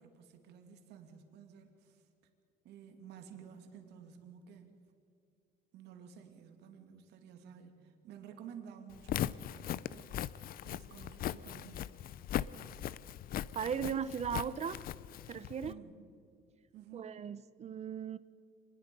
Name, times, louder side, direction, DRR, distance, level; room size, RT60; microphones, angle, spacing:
voice 1, 0.0-2.0 2.6-4.8 5.7-10.3 10.6-12.0 15.7-16.0 16.7-17.2, right 8 dB, 80° right, 2.5 m, -53 dB
Walk footsteps, 8.9-15.7, left 12 dB, 60° left, 0.6 m, -39 dB
voice 2, 13.5-14.8 15.3-15.7 16.9-18.2, right 8 dB, 40° right, 0.8 m, -37 dB
25.5 x 20.5 x 5.4 m
cardioid pair, 110°, 17 cm